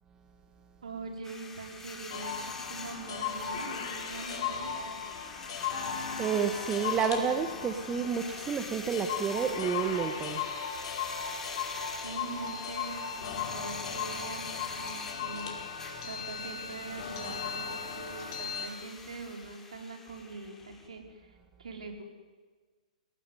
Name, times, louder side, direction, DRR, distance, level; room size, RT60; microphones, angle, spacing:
voice 1, 0.8-5.0 11.9-15.7 16.0-21.3 21.6-22.0, right 3 dB, 60° right, 3 dB, 5.0 m, -43 dB
sound 1, 1.2-20.9, left 3 dB, 10° left, 4.1 m, -45 dB
sound 2, 2.1-18.7, left 7 dB, 45° left, 4.9 m, -37 dB
voice 2, 6.2-10.4, right 7 dB, 15° right, 7 dB, 1.5 m, -30 dB
27.5 x 18.5 x 9.6 m, 1.5 s
figure-of-eight pair, 115°, 4 cm